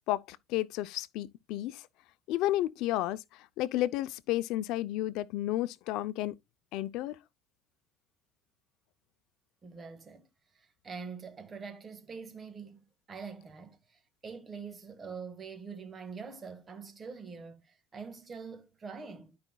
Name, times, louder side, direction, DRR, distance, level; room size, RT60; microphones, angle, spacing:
voice 1, 0.1-1.9 2.3-6.3 6.7-7.2, left 15 dB, 70° left, 0.5 m, -32 dB
voice 2, 9.6-10.3 10.5-12.8 13.1-19.4, right 5 dB, 25° right, 1.7 m, -44 dB
12.0 x 5.1 x 2.3 m
supercardioid pair, 115°, 0 cm